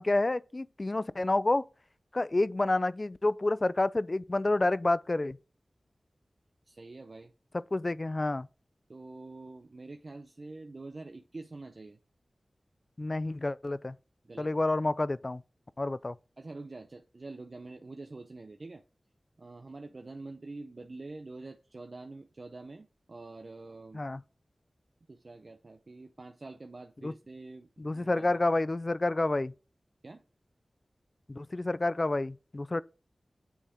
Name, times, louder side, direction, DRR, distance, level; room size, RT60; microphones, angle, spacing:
voice 1, 0.0-1.7 2.1-5.4 7.7-8.5 13.0-14.0 14.4-15.4 15.8-16.2 23.9-24.2 27.0-27.1 27.8-29.5 31.3-32.8, left 2 dB, 40° left, 0.3 m, -29 dB
voice 2, 6.7-7.3 8.9-12.0 14.2-14.6 16.4-18.8 19.4-24.0 25.1-28.4 30.0-30.2, right 3 dB, 50° right, 0.5 m, -46 dB
9.2 x 3.5 x 3.6 m
wide cardioid pair, 65°, 0 cm